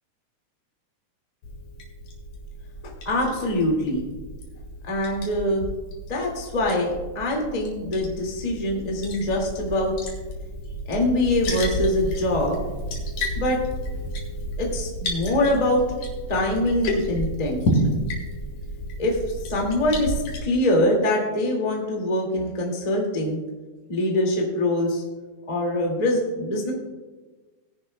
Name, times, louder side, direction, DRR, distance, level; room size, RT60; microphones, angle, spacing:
Liquid, 1.4-20.4, equal, 60° left, 3.0 m, -31 dB
voice 1, 2.8-4.0 4.9-5.7 6.1-9.9 10.9-12.6 13.3-13.6 14.6-15.8 16.3-17.6 19.0-19.2 19.5-20.1 20.4-23.4 23.9-25.0 25.5-26.7, left 1 dB, 15° left, -1 dB, 1.4 m, -24 dB
19.5 x 10.5 x 2.3 m, 1.3 s
omnidirectional pair, 4.0 m